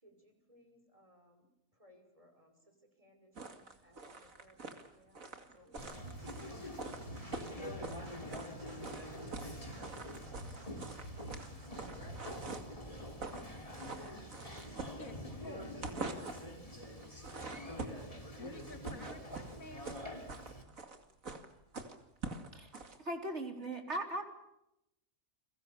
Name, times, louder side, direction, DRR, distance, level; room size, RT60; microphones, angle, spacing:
voice 1, 0.0-6.7, equal, 25° right, 5 dB, 5.8 m, -66 dB
sound 1, 3.4-8.5 8.8-9.5 9.8-12.8 13.1-13.5 13.7-15.4 15.7-16.5 17.0-18.1 18.6-23.0, right 3 dB, 65° right, 2.8 m, -45 dB
Conversation, 5.8-20.6, left 1 dB, 25° left, 3.3 m, -46 dB
sound 2, 6.0-12.6, right 2 dB, 90° right, 4.8 m, -51 dB
voice 2, 14.9-15.9 18.4-20.0, left 1 dB, 70° left, 7 dB, 2.9 m, -51 dB
voice 3, 23.0-24.2, right 1 dB, 50° right, 4 dB, 4.2 m, -38 dB
30.0 x 22.5 x 7.0 m, 0.84 s
omnidirectional pair, 1.5 m